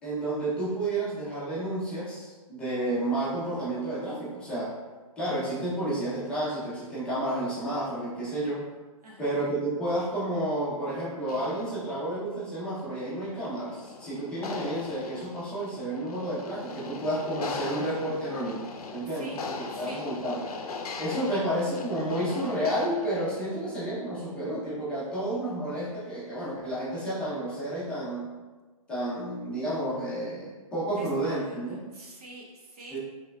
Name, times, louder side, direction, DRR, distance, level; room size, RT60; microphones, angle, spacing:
voice 1, 0.0-4.8 5.2-8.6 9.2-20.5 21.0-28.3 28.9-31.8 32.9-33.0, right 1 dB, 5° left, -11 dB, 0.6 m, -31 dB
voice 2, 9.0-9.3 19.0-19.4 19.7-20.1 21.3-21.4 21.7-21.8 30.9-33.0, right 2 dB, 85° right, -3 dB, 1.1 m, -46 dB
sound 1, 11.3-23.6, left 4 dB, 90° left, 0.5 m, -40 dB
3.7 x 3.2 x 2.3 m, 1.3 s
hypercardioid pair, 160°, 19 cm